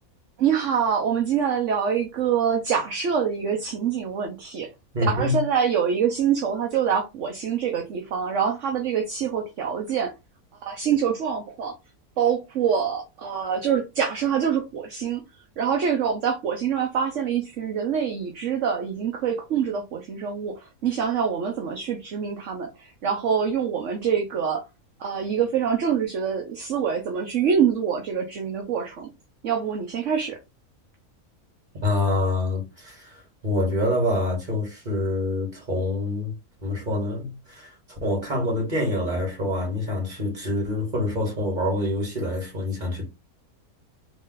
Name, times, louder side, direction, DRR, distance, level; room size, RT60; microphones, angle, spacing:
voice 1, 0.4-4.7 5.0-10.1 10.6-11.7 12.2-15.2 15.6-24.6 25.0-29.1 29.4-30.4, right 7 dB, 60° right, 1.1 m, -25 dB
voice 2, 4.9-5.4 31.8-36.3 36.6-43.1, left 1 dB, 30° right, 2.4 m, -26 dB
3.9 x 3.1 x 3.9 m
omnidirectional pair, 1.5 m